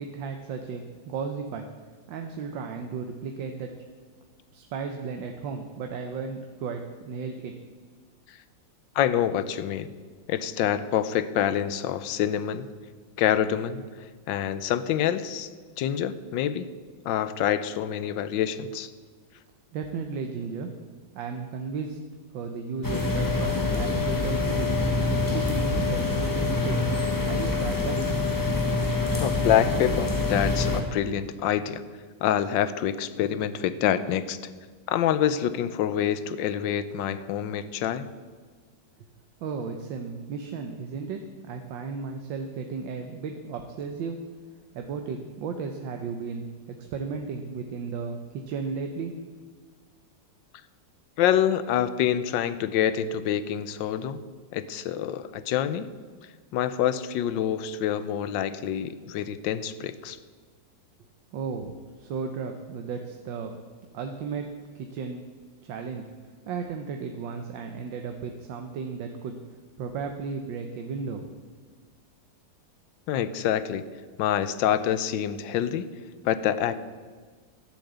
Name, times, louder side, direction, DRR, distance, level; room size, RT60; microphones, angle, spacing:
voice 1, 0.0-1.7 2.1-3.7 4.5-7.5 19.7-20.7 21.1-22.0 22.3-24.8 25.3-26.8 27.2-28.0 39.4-44.2 44.7-46.5 46.9-49.1 61.3-61.7 62.0-63.6 63.9-64.5 64.8-65.2 65.6-66.1 66.5-69.4 69.8-71.3, right 5 dB, 90° right, 4 dB, 1.6 m, -34 dB
voice 2, 8.9-9.9 10.3-12.7 13.2-13.8 14.3-15.5 15.8-16.7 17.0-18.9 29.2-31.8 32.2-34.4 34.9-38.1 51.2-54.2 54.5-55.9 56.5-60.2 73.1-73.8 74.2-75.9 76.2-76.8, left 10 dB, 80° left, 14 dB, 1.4 m, -26 dB
sound 1, 22.8-30.8, left 2 dB, 10° left, 1.1 m, -25 dB
12.0 x 7.3 x 8.1 m, 1.5 s
omnidirectional pair, 2.0 m